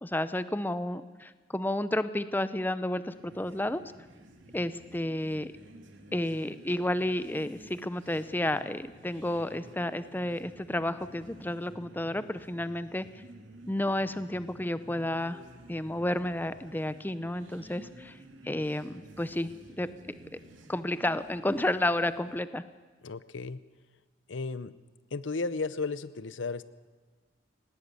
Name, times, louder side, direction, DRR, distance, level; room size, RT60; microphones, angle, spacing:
voice 1, 0.0-3.8 4.5-5.5 6.1-13.2 13.7-15.4 15.7-18.2 18.4-19.9 20.7-22.6, left 1 dB, 10° left, 13 dB, 0.6 m, -31 dB
sound 1, 3.0-22.5, right 1 dB, 85° right, 2.6 m, -52 dB
voice 2, 23.0-23.6 24.3-24.7 25.1-26.6, left 3 dB, 80° left, 16 dB, 0.8 m, -34 dB
19.5 x 18.0 x 8.4 m, 1.4 s
head